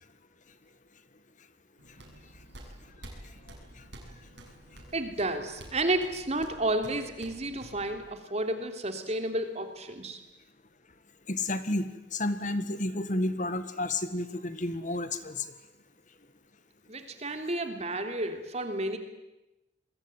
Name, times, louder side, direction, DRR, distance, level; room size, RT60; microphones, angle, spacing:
sound 1, 1.8-8.0, right 1 dB, 70° right, 6.9 m, -50 dB
voice 1, 3.2-3.8 11.3-15.5, left 2 dB, 45° left, 11 dB, 1.7 m, -32 dB
voice 2, 4.9-10.2 16.9-19.0, right 1 dB, 35° right, 7 dB, 3.1 m, -31 dB
28.0 x 21.5 x 9.1 m, 0.96 s
head